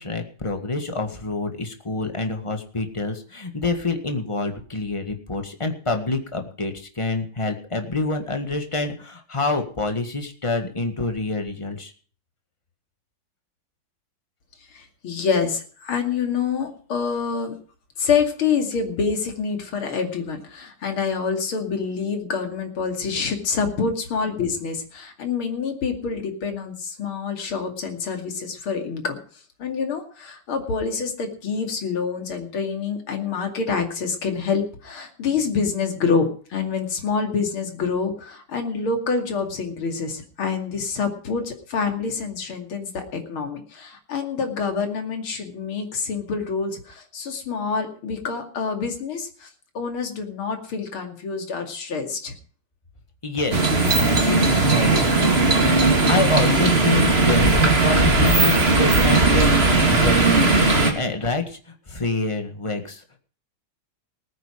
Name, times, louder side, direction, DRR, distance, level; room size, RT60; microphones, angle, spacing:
voice 1, 0.0-11.9 53.2-55.8 56.1-63.2, left 3 dB, 15° left, 5 dB, 1.6 m, -27 dB
voice 2, 14.6-17.5 18.0-49.5 49.7-52.3, left 5 dB, 75° left, 4 dB, 3.2 m, -27 dB
sound 1, 53.5-60.9, right 3 dB, 30° right, 2.4 m, -18 dB
19.0 x 9.3 x 5.0 m, 0.43 s
omnidirectional pair, 2.3 m